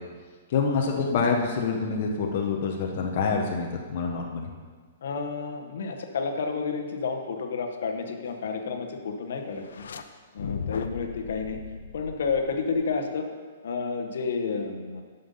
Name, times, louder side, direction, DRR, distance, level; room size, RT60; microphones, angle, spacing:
voice 1, 0.5-4.5, left 5 dB, 40° left, 1 dB, 0.8 m, -26 dB
voice 2, 5.0-9.8 10.3-11.6 11.9-13.3 13.6-15.0, left 5 dB, 65° left, 4 dB, 1.0 m, -30 dB
sound 1, 9.6-10.0 10.4-12.9, left 5 dB, 85° left, 0.6 m, -37 dB
7.5 x 6.8 x 5.5 m, 1.5 s
hypercardioid pair, 175°, 0 cm